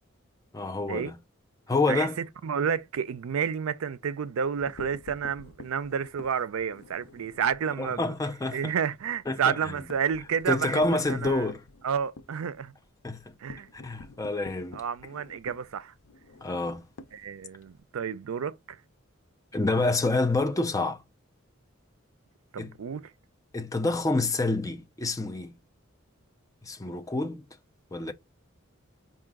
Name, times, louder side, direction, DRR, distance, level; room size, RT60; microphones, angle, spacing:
voice 1, 0.5-1.2 1.7-2.2 7.8-8.7 9.3-9.7 10.5-11.6 13.0-13.3 13.7-14.8 16.4-16.8 19.5-21.0 22.6-22.8 23.5-25.6 26.6-27.4 27.9-28.1, left 2 dB, 15° left, 0.5 m, -28 dB
voice 2, 1.9-8.1 8.5-11.5 11.8-12.7 13.4-13.7 14.7-15.9 17.1-18.8 22.5-23.1, right 7 dB, 85° right, 0.4 m, -30 dB
sound 1, 4.4-7.6 8.0-8.2 8.5-8.6 8.9-17.8, left 3 dB, 85° left, 0.6 m, -48 dB
4.8 x 2.5 x 3.5 m
head